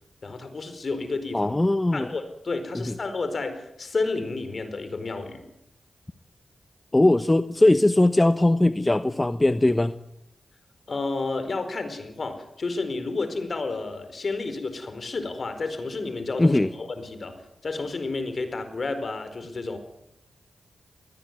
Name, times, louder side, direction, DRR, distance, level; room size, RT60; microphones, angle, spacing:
voice 1, 0.2-1.5 1.9-5.4 10.9-19.8, left 3 dB, 55° left, 10 dB, 4.7 m, -31 dB
voice 2, 1.3-2.1 2.7-2.9 6.9-9.9 16.4-16.7, left 1 dB, 20° left, 11 dB, 1.0 m, -20 dB
20.5 x 19.0 x 9.5 m, 0.83 s
cardioid pair, 50°, 0 cm